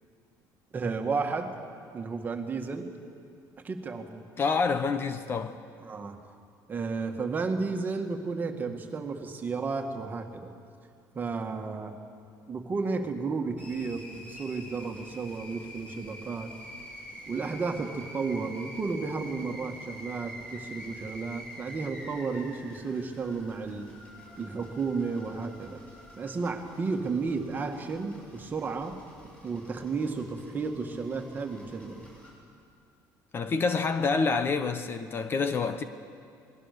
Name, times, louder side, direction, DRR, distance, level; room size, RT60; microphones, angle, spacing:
voice 1, 0.7-1.5 1.9-2.9 3.6-4.2 5.8-6.2 6.7-10.5 11.1-11.9 12.5-16.5 17.3-23.9 24.4-25.8 26.2-29.0 29.4-32.0, right 4 dB, 25° right, 1.9 m, -33 dB
voice 2, 4.4-5.6 33.3-35.8, left 4 dB, 30° left, 0.9 m, -27 dB
sound 1, 13.6-32.3, equal, 15° left, 6.9 m, -47 dB
27.0 x 20.5 x 6.8 m
cardioid pair, 145°, 7 cm